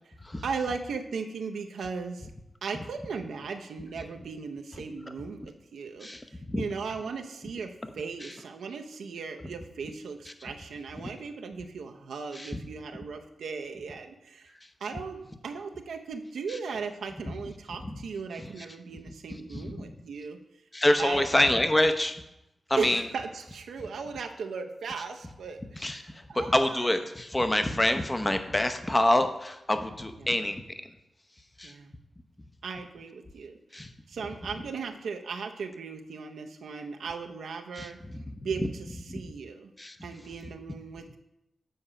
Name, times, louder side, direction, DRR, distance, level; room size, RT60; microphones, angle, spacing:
voice 1, 0.4-2.3 2.6-14.5 14.8-20.4 21.0-21.3 22.8-27.0 30.2-30.3 31.6-31.9 32.6-33.6 34.1-38.0 38.4-39.7 40.0-41.2, right 5 dB, 85° right, 5 dB, 0.6 m, -37 dB
voice 2, 6.0-6.7 8.2-8.3 10.4-10.5 11.0-11.1 12.3-12.6 16.5-16.6 17.8-18.0 19.5-19.7 20.7-22.2 22.7-23.0 25.8-26.0 26.3-30.6 31.6-31.7 33.7-33.9 37.8-37.9 38.1-38.2 39.1-39.2 39.8-40.0, left 1 dB, 20° left, 8 dB, 0.8 m, -26 dB
7.9 x 4.3 x 4.9 m, 0.87 s
cardioid pair, 45°, 0 cm